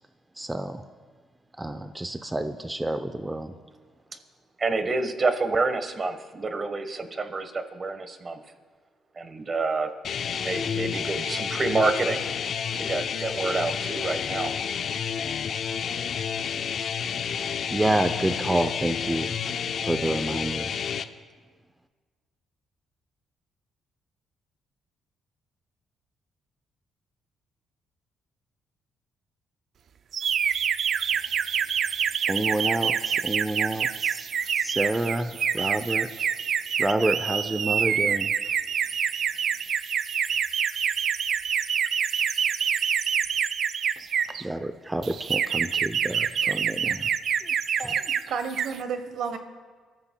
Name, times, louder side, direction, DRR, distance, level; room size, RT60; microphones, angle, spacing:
voice 1, 0.4-0.8 1.6-3.5 17.3-19.3 19.8-20.7 32.3-34.3 34.5-36.1 36.8-38.3 44.3-47.1 47.4-47.5 47.8-48.0, right 1 dB, 10° right, 9 dB, 0.5 m, -29 dB
voice 2, 4.6-8.4 9.2-9.9 10.4-12.2 12.7-14.5, right 3 dB, 35° right, 9 dB, 1.2 m, -28 dB
sound 1, 10.0-21.0, left 7 dB, 60° left, 0.5 m, -30 dB
sound 2, 30.1-44.4 45.0-48.2 48.5-48.8, right 8 dB, 60° right, 0.3 m, -26 dB
voice 3, 48.0-49.4, right 6 dB, 75° right, 8 dB, 1.0 m, -32 dB
26.0 x 13.5 x 2.3 m, 1.5 s
cardioid pair, 90°, 0 cm